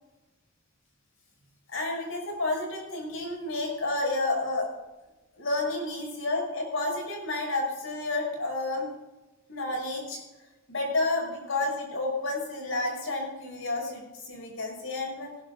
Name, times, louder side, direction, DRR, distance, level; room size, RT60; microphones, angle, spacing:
voice 1, 1.7-4.7 5.4-8.9 9.5-10.2 10.7-15.3, left 2 dB, 70° left, 0 dB, 6.3 m, -30 dB
19.5 x 17.5 x 2.5 m, 1.1 s
head